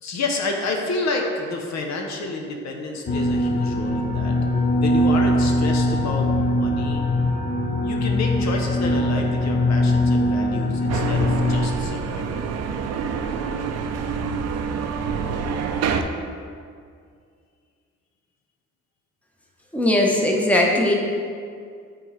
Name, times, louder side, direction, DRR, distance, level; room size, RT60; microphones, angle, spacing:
voice 1, 0.0-4.3 4.8-7.0 7.8-12.5, left 2 dB, 65° left, 2 dB, 0.8 m, -29 dB
sound 1, 3.1-11.7, left 1 dB, 30° left, 0.6 m, -21 dB
sound 2, 10.9-16.0, right 6 dB, 60° right, 0.5 m, -27 dB
voice 2, 19.7-20.9, left 1 dB, 5° left, -1 dB, 0.9 m, -19 dB
8.3 x 3.8 x 3.2 m, 2.2 s
cardioid pair, 90°, 30 cm